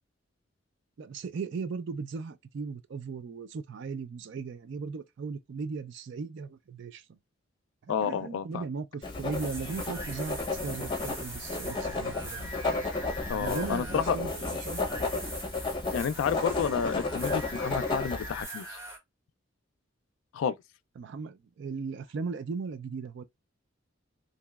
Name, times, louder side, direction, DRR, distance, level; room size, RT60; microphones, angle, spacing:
voice 1, 1.0-7.2 7.8-12.5 13.3-15.0 21.0-23.2, right 5 dB, 65° right, 0.4 m, -37 dB
voice 2, 7.9-8.6 13.3-14.2 15.9-18.8 20.3-20.6, left 7 dB, 80° left, 0.3 m, -30 dB
Writing, 9.0-18.4, left 3 dB, 25° left, 0.7 m, -33 dB
sound 1, 9.1-19.0, right 1 dB, 15° right, 1.4 m, -42 dB
2.9 x 2.7 x 2.2 m
head